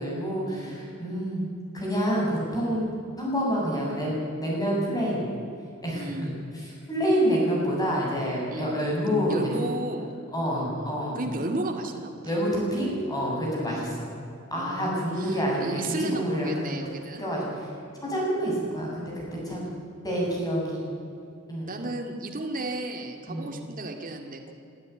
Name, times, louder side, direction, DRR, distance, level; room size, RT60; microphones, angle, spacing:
voice 1, 0.0-1.5 1.7-2.9 3.2-5.3 5.8-9.7 10.3-11.2 12.2-14.1 14.5-16.5 17.2-17.5 18.0-19.7 20.0-20.9 21.5-21.7 23.3-23.5, equal, 15° left, -3 dB, 7.5 m, -28 dB
voice 2, 5.9-6.3 8.5-8.8 9.3-10.1 10.4-12.1 13.7-14.0 14.5-17.2 19.3-19.8 21.7-24.5, right 2 dB, 40° right, 2 dB, 2.2 m, -34 dB
23.5 x 13.0 x 9.3 m, 2.5 s
head